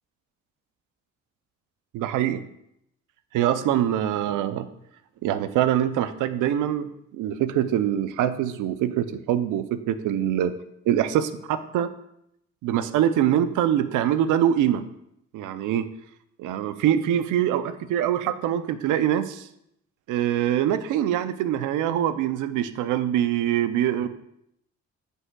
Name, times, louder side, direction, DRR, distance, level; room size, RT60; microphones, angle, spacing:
voice 1, 1.9-2.4 3.3-4.7 5.2-10.6 10.9-11.9 12.6-14.8 15.3-15.9 16.4-19.5 20.1-24.1, right 10 dB, 85° right, 12 dB, 0.5 m, -24 dB
9.5 x 5.5 x 2.3 m, 0.77 s
cardioid pair, 90°, 30 cm